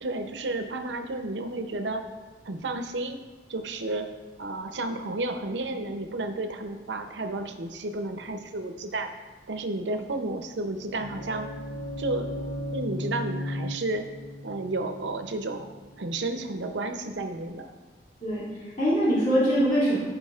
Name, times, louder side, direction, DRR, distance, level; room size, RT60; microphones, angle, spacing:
voice 1, 0.0-2.0 2.4-3.2 3.5-4.1 4.4-9.1 9.5-11.5 12.0-14.0 14.4-17.7, right 2 dB, 90° right, 6 dB, 0.7 m, -32 dB
sound 1, 10.6-16.4, left 1 dB, 85° left, 1.1 m, -36 dB
voice 2, 18.2-20.0, equal, 45° left, -11 dB, 2.6 m, -23 dB
14.0 x 5.1 x 2.4 m, 1.3 s
head